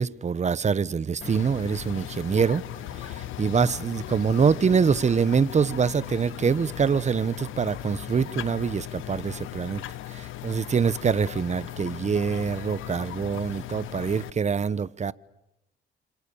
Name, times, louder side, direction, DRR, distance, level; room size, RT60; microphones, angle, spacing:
voice 1, 0.0-2.6 3.0-9.8 10.1-15.1, right 6 dB, 35° right, 1.0 m, -25 dB
sound 1, 1.2-14.3, left 13 dB, 85° left, 1.3 m, -38 dB
29.5 x 27.0 x 7.1 m
cardioid pair, 90°, 20 cm